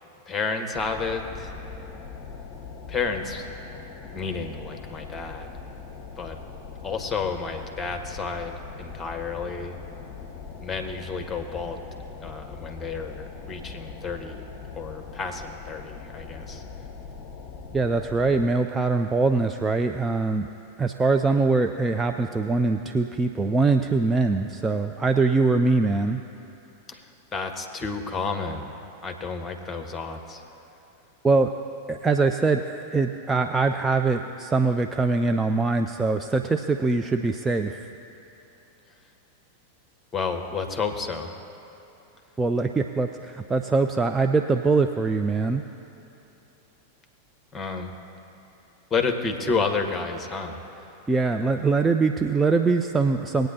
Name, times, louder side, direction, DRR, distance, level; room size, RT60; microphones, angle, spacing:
voice 1, 0.3-1.5 2.9-3.5 4.1-5.5 6.2-6.4 6.8-9.8 10.6-11.8 12.2-14.4 14.7-16.6 26.9-27.0 27.3-28.7 29.0-30.4 40.1-41.3 47.5-47.9 48.9-50.6, left 4 dB, 20° left, 5 dB, 1.1 m, -30 dB
sound 1, 0.7-18.5, left 5 dB, 40° left, 0.8 m, -41 dB
voice 2, 17.7-20.5 20.8-26.2 31.2-31.5 31.9-32.6 32.9-37.8 42.4-45.6 51.1-53.5, right 3 dB, 10° right, 5 dB, 0.4 m, -23 dB
19.5 x 9.0 x 2.8 m, 3.0 s
figure-of-eight pair, 90°, 0 cm